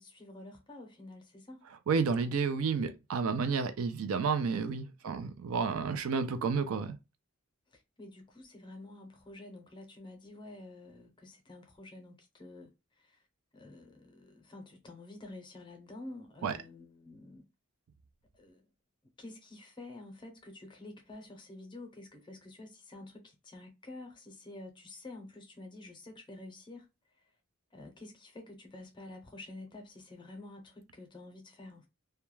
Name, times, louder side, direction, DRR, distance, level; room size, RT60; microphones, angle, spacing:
voice 1, 0.0-1.6 3.1-3.4 5.0-5.4 7.7-12.7 13.0-13.2 13.5-17.4 18.4-18.7 19.2-26.9 27.7-31.9, left 2 dB, 20° left, 0.6 m, -49 dB
voice 2, 1.9-7.0 16.4-16.6, right 5 dB, 75° right, 0.4 m, -31 dB
2.2 x 2.2 x 3.1 m
head